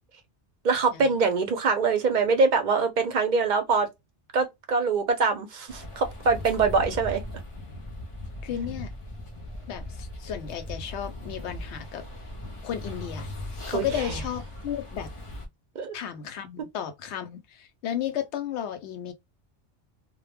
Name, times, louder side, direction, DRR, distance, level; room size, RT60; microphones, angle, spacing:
voice 1, 0.6-3.9 4.3-7.2 13.7-14.2 15.8-15.9, right 4 dB, 55° right, 0.5 m, -24 dB
sound 1, 5.7-15.5, left 1 dB, 40° left, 0.5 m, -38 dB
voice 2, 8.4-8.9 9.6-12.1 12.6-13.3 13.7-15.1 15.9-19.1, left 9 dB, 80° left, 0.9 m, -33 dB
2.1 x 2.0 x 3.2 m
omnidirectional pair, 1.2 m